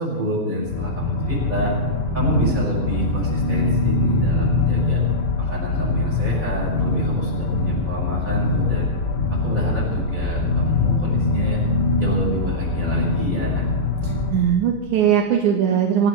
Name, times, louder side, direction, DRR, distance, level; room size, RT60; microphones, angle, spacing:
voice 1, 0.0-1.8 2.1-5.0 5.4-8.9 9.3-11.6 12.0-13.7, equal, 20° right, -5 dB, 6.1 m, -28 dB
sound 1, 0.6-14.3, left 3 dB, 80° left, 4.1 m, -22 dB
voice 2, 14.0-16.1, right 8 dB, 70° right, 1 dB, 1.9 m, -20 dB
25.5 x 17.0 x 3.3 m, 1.3 s
omnidirectional pair, 4.7 m